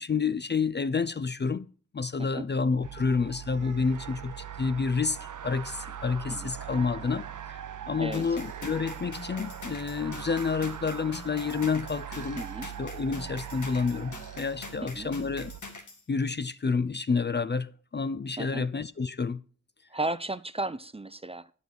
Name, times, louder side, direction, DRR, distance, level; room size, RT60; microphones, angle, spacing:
voice 1, 0.0-1.7 1.9-5.2 5.4-7.6 7.9-12.4 12.8-15.5 16.1-19.4, left 5 dB, 35° left, 0.4 m, -29 dB
voice 2, 2.2-2.5 6.3-6.5 8.0-8.4 12.4-12.7 14.8-15.1 18.4-18.7 19.9-21.5, right 2 dB, 20° right, 0.5 m, -35 dB
sound 1, 2.8-15.6, right 10 dB, 80° right, 0.5 m, -41 dB
sound 2, 8.1-16.0, left 3 dB, 75° left, 1.9 m, -45 dB
9.2 x 5.2 x 6.2 m
cardioid pair, 40°, 30 cm